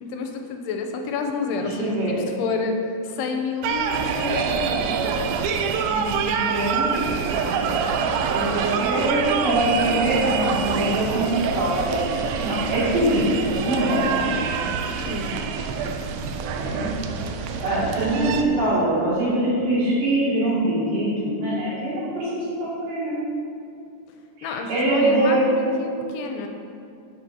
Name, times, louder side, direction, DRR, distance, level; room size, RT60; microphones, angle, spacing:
voice 1, 0.0-5.0 15.1-15.4 24.4-26.5, left 4 dB, 85° left, 4 dB, 2.5 m, -29 dB
voice 2, 1.6-2.2 5.9-6.9 8.3-14.4 16.6-16.9 17.6-23.2 24.4-25.4, right 1 dB, 60° right, -9 dB, 3.6 m, -23 dB
sound 1, 3.6-18.4, right 6 dB, 85° right, 2.1 m, -26 dB
10.5 x 7.2 x 2.7 m, 2.5 s
omnidirectional pair, 4.7 m